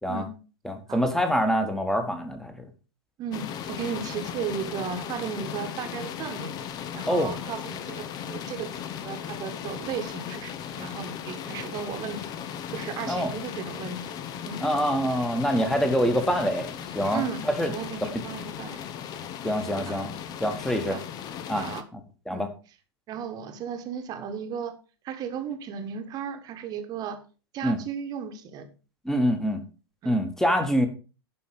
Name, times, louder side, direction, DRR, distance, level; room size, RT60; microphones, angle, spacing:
voice 1, 0.6-2.7 7.1-7.3 13.1-13.3 14.6-16.7 16.9-17.7 18.1-18.2 19.4-20.1 20.4-21.0 21.5-21.7 21.9-22.0 22.3-22.5 27.6-27.8 29.0-29.6 30.0-30.9, equal, 5° left, 8 dB, 1.4 m, -25 dB
voice 2, 3.2-6.5 6.9-12.3 12.7-14.0 14.5-14.6 17.1-18.8 19.9-20.0 20.9-21.0 21.5-21.8 22.3-22.5 23.1-24.8 25.0-27.2 27.5-28.7 30.0-30.2, right 7 dB, 30° right, 8 dB, 1.4 m, -35 dB
sound 1, 3.3-21.8, left 9 dB, 30° left, 0.8 m, -37 dB
11.0 x 5.3 x 4.9 m, 0.34 s
figure-of-eight pair, 95°, 14 cm